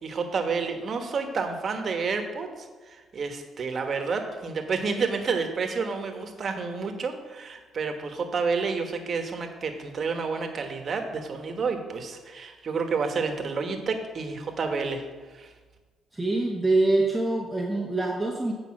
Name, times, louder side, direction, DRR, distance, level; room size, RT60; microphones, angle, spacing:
voice 1, 0.0-15.0 15.3-15.5, right 4 dB, 50° right, 5 dB, 1.3 m, -30 dB
voice 2, 16.1-18.5, right 2 dB, 10° right, -1 dB, 1.0 m, -24 dB
8.4 x 5.2 x 6.0 m, 1.3 s
cardioid pair, 90°, 0 cm